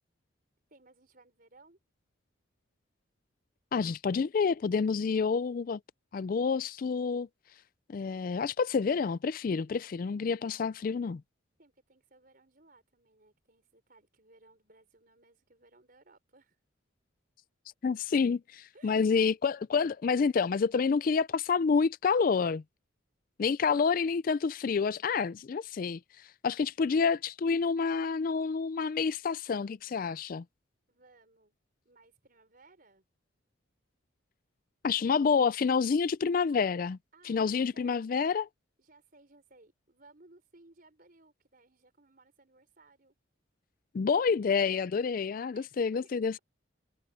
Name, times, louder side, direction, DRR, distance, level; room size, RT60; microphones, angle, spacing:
voice 1, 0.7-1.8 11.6-16.6 18.7-19.0 30.9-31.6 31.8-33.0 37.1-38.2 38.8-43.1 45.5-45.7 46.0-46.1, right 2 dB, 45° right, 4.9 m, -61 dB
voice 2, 3.7-5.8 6.1-7.3 7.9-11.2 17.8-22.6 23.4-30.4 34.8-37.0 37.2-38.5 43.9-46.4, left 5 dB, 45° left, 0.3 m, -28 dB
head